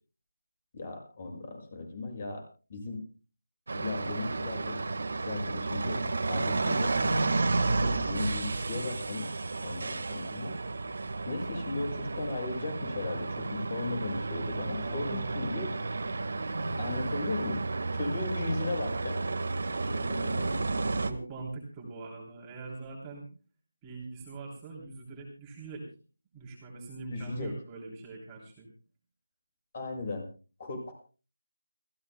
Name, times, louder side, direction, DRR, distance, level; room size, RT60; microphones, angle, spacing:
voice 1, 0.7-2.4 2.7-3.0 3.7-4.8 5.1-6.9 7.8-9.3 9.6-10.6 11.3-15.7 16.8-17.6 17.9-19.2 20.1-20.7 27.1-27.5 29.7-30.3 30.6-30.9, left 2 dB, 35° left, 4 dB, 6.7 m, -36 dB
sound 1, 3.7-21.1, right 3 dB, 60° right, 1.6 m, -32 dB
voice 2, 14.7-15.6 21.0-23.3 23.8-25.9 26.3-28.7, right 3 dB, 15° right, -2 dB, 3.2 m, -42 dB
29.5 x 15.0 x 2.2 m, 0.36 s
figure-of-eight pair, 165°, 0 cm